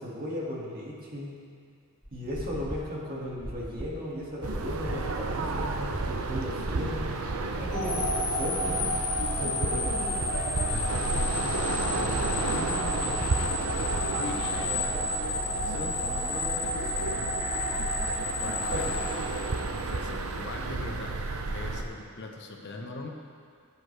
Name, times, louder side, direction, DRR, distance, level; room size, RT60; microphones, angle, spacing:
voice 1, 0.0-1.4 2.1-8.9 9.4-10.2 18.7-19.0, equal, 40° right, -4 dB, 2.1 m, -36 dB
sound 1, 2.0-14.1, equal, ahead, 0.4 m, -40 dB
sound 2, 4.4-21.8, right 3 dB, 70° right, 0.7 m, -32 dB
sound 3, 7.7-19.9, left 2 dB, 35° left, 2.6 m, -32 dB
voice 2, 10.7-11.6 11.9-13.3 14.1-17.4 18.3-18.9 19.8-23.1, left 2 dB, 55° left, 2 dB, 1.0 m, -40 dB
16.0 x 8.2 x 3.4 m, 2.2 s
head